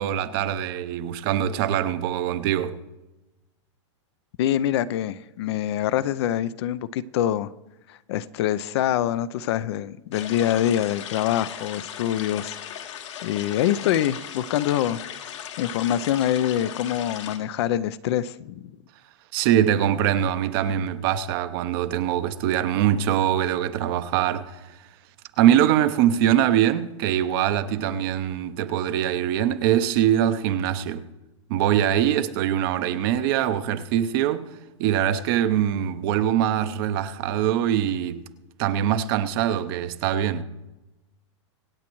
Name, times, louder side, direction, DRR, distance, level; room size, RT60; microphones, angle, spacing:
voice 1, 0.0-2.8 19.3-24.6 25.4-31.1 31.5-34.5 34.8-38.2 38.6-40.4, right 10 dB, 50° right, 0.8 m, -23 dB
voice 2, 4.4-7.5 7.9-12.6 13.2-15.0 15.6-18.7, left 11 dB, 60° left, 0.5 m, -25 dB
sound 1, 10.1-17.4, left 9 dB, 75° left, 1.7 m, -37 dB
25.0 x 8.4 x 3.1 m
hypercardioid pair, 135°, 16 cm